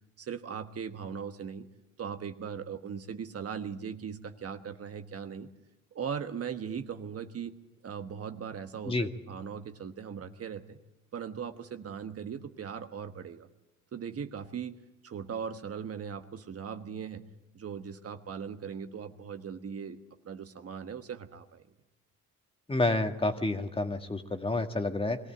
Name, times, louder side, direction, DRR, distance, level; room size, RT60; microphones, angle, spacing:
voice 1, 0.2-1.7 2.0-5.5 5.9-7.5 7.8-10.8 11.1-13.5 13.9-14.8 15.0-17.3 17.5-20.0 20.2-21.6, right 7 dB, 50° right, 8 dB, 1.3 m, -39 dB
voice 2, 22.7-25.2, left 2 dB, 20° left, 6 dB, 1.8 m, -29 dB
22.0 x 15.5 x 9.0 m, 0.99 s
cardioid pair, 90°, 30 cm